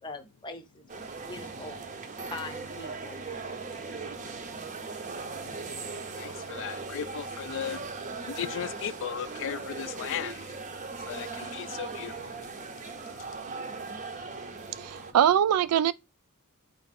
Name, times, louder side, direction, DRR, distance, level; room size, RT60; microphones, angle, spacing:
voice 1, 0.0-1.8 2.2-3.2, left 3 dB, 20° left, 0.6 m, -42 dB
sound 1, 0.9-15.1, right 4 dB, 35° right, 0.5 m, -39 dB
voice 2, 6.2-7.8 8.2-10.4 11.0-12.7 12.9-13.8 14.3-14.4 14.7-14.8, left 9 dB, 60° left, 0.3 m, -37 dB
voice 3, 14.8-15.9, right 9 dB, 85° right, 0.3 m, -22 dB
4.5 x 2.5 x 4.0 m
head